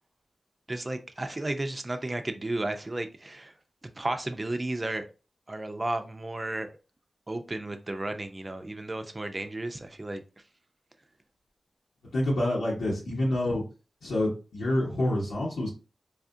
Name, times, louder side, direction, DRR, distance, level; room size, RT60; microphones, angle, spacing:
voice 1, 0.7-3.5 3.8-5.0 5.5-6.7 7.3-10.2, right 2 dB, 35° right, 0.6 m, -33 dB
voice 2, 12.1-13.6 14.0-15.7, left 1 dB, 90° left, 1.2 m, -27 dB
4.1 x 2.4 x 2.7 m
cardioid pair, 45°, 0 cm